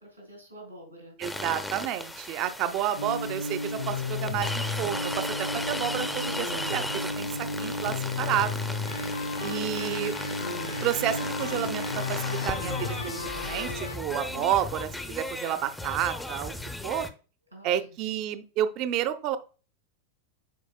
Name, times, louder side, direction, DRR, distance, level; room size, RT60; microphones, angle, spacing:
voice 1, 0.0-1.2 2.6-3.1 9.5-10.1 14.1-14.6 17.5-18.0, right 1 dB, 90° right, 2 dB, 3.3 m, -47 dB
sound 1, 1.2-17.1, left 1 dB, 5° left, 0.7 m, -36 dB
voice 2, 1.2-8.6 9.4-10.1 10.8-16.5 16.8-17.1 17.6-19.4, right 11 dB, 40° right, 10 dB, 0.6 m, -30 dB
sound 2, 3.0-14.0, left 3 dB, 70° left, 1.0 m, -33 dB
9.3 x 4.8 x 2.2 m, 0.36 s
figure-of-eight pair, 90°, 0 cm